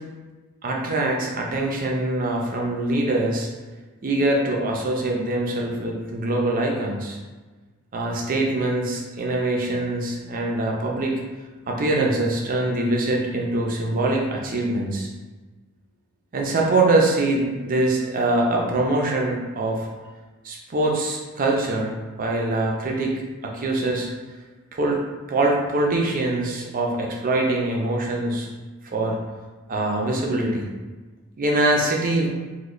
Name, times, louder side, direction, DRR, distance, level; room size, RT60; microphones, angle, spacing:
voice 1, 0.6-3.5 4.0-7.2 7.9-11.1 11.7-15.1 16.3-19.9 20.4-23.1 23.4-24.1 24.8-25.0 25.3-28.5 28.9-29.2 29.7-30.7 31.4-32.3, right 2 dB, 40° right, -1 dB, 0.5 m, -23 dB
3.1 x 2.2 x 3.8 m, 1.3 s
head